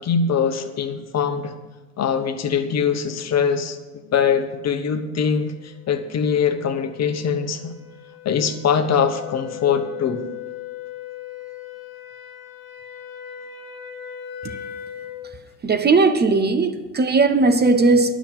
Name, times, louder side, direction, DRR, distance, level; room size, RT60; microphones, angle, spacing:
voice 1, 0.0-1.5 2.0-3.8 4.0-7.7 8.2-10.3, left 7 dB, 40° left, 1.2 m, -22 dB
sound 1, 5.3-15.3, left 10 dB, 90° left, 1.3 m, -38 dB
voice 2, 15.6-18.1, right 3 dB, 25° right, 0.8 m, -17 dB
10.0 x 6.2 x 8.9 m
hypercardioid pair, 65°, 41 cm